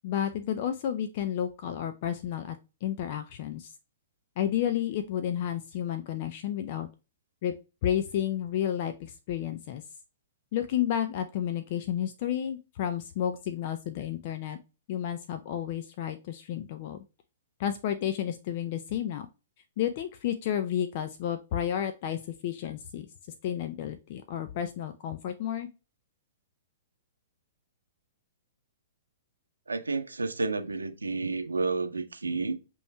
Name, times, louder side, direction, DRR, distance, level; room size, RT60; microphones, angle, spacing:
voice 1, 0.0-3.7 4.4-6.9 7.4-7.5 7.8-9.8 10.5-14.6 14.9-17.0 17.6-19.3 19.8-23.1 23.4-25.7, left 10 dB, 50° left, 0.4 m, -31 dB
voice 2, 29.7-32.5, right 3 dB, 85° right, 0.7 m, -30 dB
6.8 x 3.1 x 2.2 m
figure-of-eight pair, 115°, 0 cm